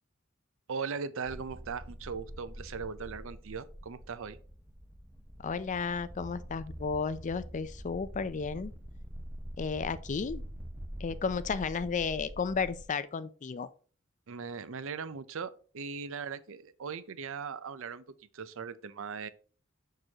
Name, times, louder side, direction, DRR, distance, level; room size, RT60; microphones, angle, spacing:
voice 1, 0.7-4.4 14.3-18.0 18.3-19.3, right 5 dB, 70° right, 0.5 m, -39 dB
sound 1, 1.2-12.9, equal, 10° right, 0.6 m, -45 dB
voice 2, 5.4-8.7 9.6-10.4 11.0-13.7, left 5 dB, 35° left, 0.4 m, -33 dB
6.6 x 6.2 x 2.9 m
head